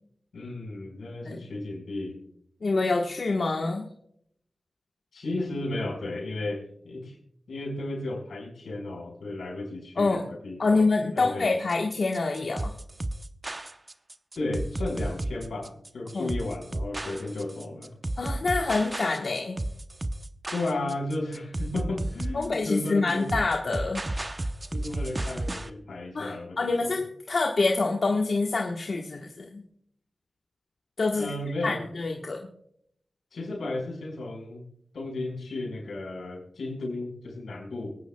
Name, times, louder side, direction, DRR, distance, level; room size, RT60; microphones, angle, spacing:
voice 1, 0.3-2.2 5.1-7.2 7.5-10.9 11.1-11.6 14.3-17.9 20.5-23.3 24.7-27.0 31.1-31.8 33.3-34.7 34.9-38.0, left 2 dB, 85° left, 0 dB, 4.7 m, -34 dB
voice 2, 2.6-3.9 10.0-10.3 10.6-12.7 16.1-16.3 18.2-19.6 22.3-24.1 26.1-29.6 31.0-31.3 31.6-32.5, left 3 dB, 65° left, 1 dB, 1.2 m, -26 dB
sound 1, 11.7-25.7, right 1 dB, 30° right, 0.8 m, -33 dB
24.5 x 9.5 x 2.2 m, 0.70 s
cardioid pair, 55°, 0 cm